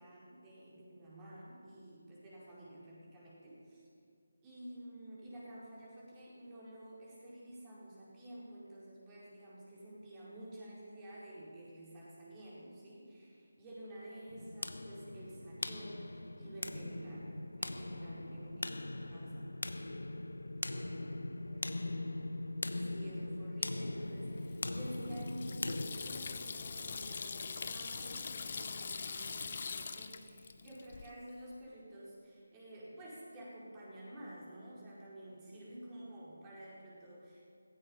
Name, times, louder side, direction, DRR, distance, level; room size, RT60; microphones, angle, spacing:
voice 1, 0.0-3.8 4.4-18.6 19.1-19.7 22.7-37.5, right 1 dB, 15° right, -7 dB, 4.6 m, -50 dB
sound 1, 14.3-25.9, left 2 dB, 80° left, 1.0 m, -40 dB
voice 2, 18.0-19.1 20.8-21.9, right 1 dB, 65° right, -3 dB, 2.6 m, -56 dB
Water tap faucet / Sink (filling or washing), 24.4-31.1, left 5 dB, 45° left, 0.9 m, -43 dB
16.0 x 15.0 x 5.6 m, 2.3 s
figure-of-eight pair, 160°, 0 cm